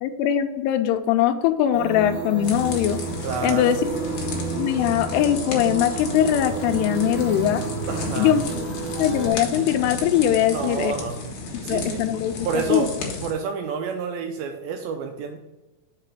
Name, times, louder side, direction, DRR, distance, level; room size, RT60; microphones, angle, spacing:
voice 1, 0.0-3.0 3.4-3.8 4.6-7.6 8.2-8.6 9.0-10.9 11.7-12.9, left 10 dB, 85° left, 8 dB, 2.6 m, -21 dB
sound 1, 1.7-9.3, right 4 dB, 30° right, 2.0 m, -31 dB
sound 2, 2.4-13.3, left 3 dB, 65° left, 2.0 m, -33 dB
voice 2, 3.2-3.8 7.9-8.5 10.5-11.3 11.6-12.1 12.4-12.9 13.2-15.4, right 6 dB, 80° right, 5 dB, 2.2 m, -29 dB
5.5 x 4.8 x 6.0 m, 1.0 s
omnidirectional pair, 4.7 m